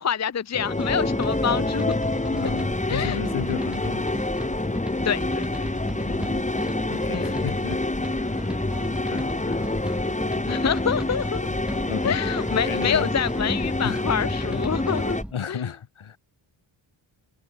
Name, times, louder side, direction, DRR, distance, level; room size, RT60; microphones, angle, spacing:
voice 1, 0.0-1.9 2.9-3.2 5.0-5.7 7.1-7.4 10.5-11.5 12.0-15.2 15.5-15.7, left 7 dB, 35° left, 0.7 m, -27 dB
sound 1, 0.5-15.2, left 2 dB, 15° left, 3.8 m, -27 dB
sound 2, 0.8-15.3, equal, ahead, 2.1 m, -35 dB
voice 2, 2.3-4.1 6.1-6.6 6.9-8.8 9.0-9.9 11.9-12.2 12.6-13.1 13.8-14.0 14.4-14.7 15.3-16.2, left 7 dB, 75° left, 6.4 m, -34 dB
wide cardioid pair, 135°, 49 cm